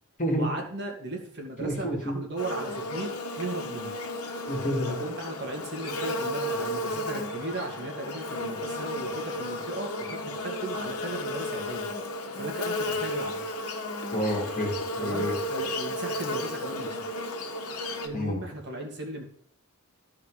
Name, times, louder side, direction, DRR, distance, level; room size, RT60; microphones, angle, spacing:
voice 1, 0.3-3.9 4.9-11.9 12.3-13.4 15.0-16.9 18.0-19.3, right 2 dB, 50° right, 1 dB, 2.3 m, -37 dB
voice 2, 1.6-2.2 4.5-4.9 14.1-15.4 18.1-18.4, equal, 35° left, 0 dB, 2.8 m, -29 dB
Buzz, 2.4-18.1, left 1 dB, 75° left, 1.5 m, -33 dB
14.0 x 4.8 x 5.0 m, 0.62 s
head